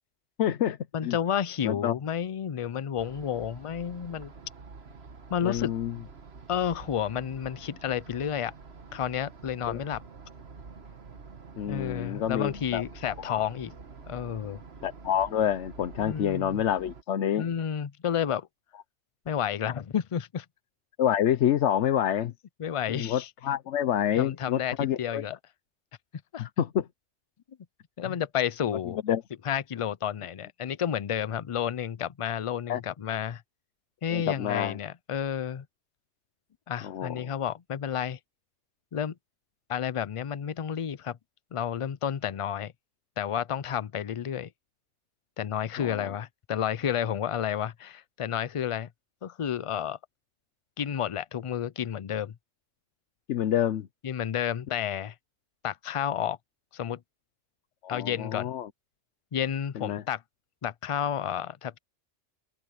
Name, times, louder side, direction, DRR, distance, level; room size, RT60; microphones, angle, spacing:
voice 1, 0.4-1.2 1.6-1.9 5.4-5.9 9.7-9.8 11.6-12.8 13.3-13.4 14.8-17.5 21.0-22.3 22.9-25.2 26.4-26.9 28.1-28.2 29.1-29.2 32.7-32.8 34.1-34.8 36.8-37.3 45.8-46.1 53.3-53.9 57.8-58.7 59.8-60.0, left 10 dB, 80° left, 1.0 m, -28 dB
voice 2, 0.9-4.3 5.3-5.7 6.5-8.5 8.9-10.0 11.7-13.7 14.1-14.6 16.0-16.6 17.4-18.5 19.3-20.5 22.6-23.3 24.2-25.4 26.3-26.5 28.0-29.0 29.4-33.4 34.0-35.7 36.7-38.2 38.9-39.2 39.7-41.2 41.5-42.7 43.2-44.5 45.4-48.9 49.2-50.0 50.8-52.3 54.0-55.1 55.6-56.4 56.7-57.0 57.9-58.5 59.3-60.2 60.6-61.8, left 9 dB, 50° left, 0.4 m, -31 dB
sound 1, 3.0-17.0, right 4 dB, 65° right, 1.7 m, -47 dB
open air
omnidirectional pair, 1.2 m